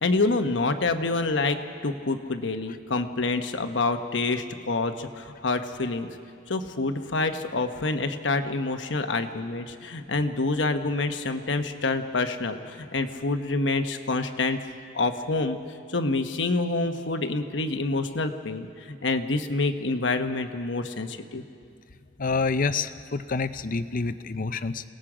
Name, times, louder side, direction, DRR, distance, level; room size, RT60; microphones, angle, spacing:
voice 1, 0.0-1.6 1.8-6.1 6.5-14.6 14.9-21.4, left 3 dB, 75° left, 7 dB, 1.1 m, -27 dB
voice 2, 22.2-24.8, left 4 dB, 50° left, 12 dB, 0.6 m, -27 dB
28.5 x 18.5 x 5.0 m, 2.4 s
head